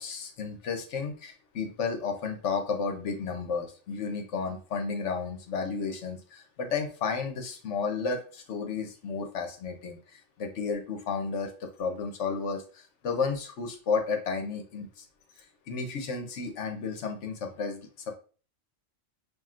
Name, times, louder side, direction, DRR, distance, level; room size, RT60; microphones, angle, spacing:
voice 1, 0.0-15.0 15.7-18.2, left 5 dB, 65° left, 4 dB, 1.1 m, -32 dB
5.8 x 2.7 x 2.4 m, 0.39 s
omnidirectional pair, 1.4 m